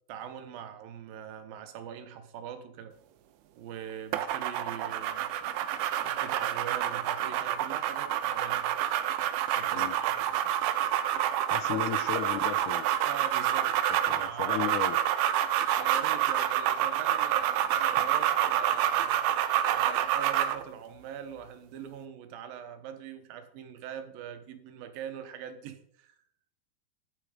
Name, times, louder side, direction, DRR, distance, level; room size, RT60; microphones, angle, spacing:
voice 1, 0.1-2.9 3.6-5.3 6.0-8.8 9.5-10.3 11.7-11.8 13.1-13.8 14.1-14.7 15.8-19.3 19.7-26.2, right 8 dB, 75° right, 9 dB, 2.8 m, -42 dB
sound 1, 4.1-20.6, right 11 dB, 90° right, 2.7 m, -28 dB
voice 2, 11.5-12.9 14.1-15.0, left 11 dB, 85° left, 12 dB, 1.7 m, -35 dB
11.0 x 9.8 x 5.0 m, 0.69 s
omnidirectional pair, 4.3 m